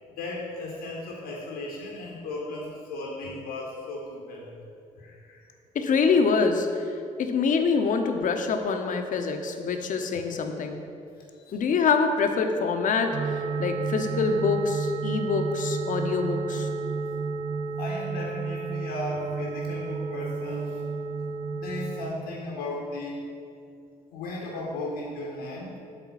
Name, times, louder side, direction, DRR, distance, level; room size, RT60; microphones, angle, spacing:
voice 1, 0.2-4.5 5.0-5.5 11.2-11.6 17.8-20.8 21.5-23.3 24.1-25.8, left 2 dB, 75° left, -3 dB, 1.0 m, -36 dB
voice 2, 5.7-6.7 7.2-10.8 11.5-16.7, left 5 dB, 45° left, 5 dB, 0.7 m, -25 dB
sound 1, 13.1-22.1, right 4 dB, 35° right, 0.6 m, -31 dB
8.2 x 3.7 x 5.7 m, 2.5 s
figure-of-eight pair, 45°, 18 cm